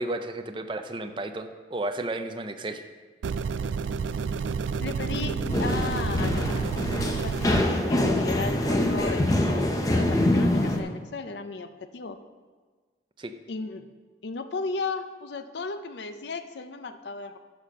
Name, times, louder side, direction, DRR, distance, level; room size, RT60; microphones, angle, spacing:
voice 1, 0.0-2.8 13.2-13.3, right 2 dB, 25° right, 7 dB, 0.5 m, -33 dB
sound 1, 3.2-7.6, right 5 dB, 90° right, 0.3 m, -30 dB
voice 2, 4.8-6.7 7.2-12.2 13.5-13.9 14.2-17.4, left 3 dB, 70° left, 9 dB, 0.6 m, -35 dB
sound 2, 4.9-6.7, left 1 dB, 40° left, 2.0 m, -37 dB
sound 3, 5.5-10.8, left 1 dB, 20° left, 0.7 m, -24 dB
11.0 x 4.3 x 6.3 m, 1.4 s
head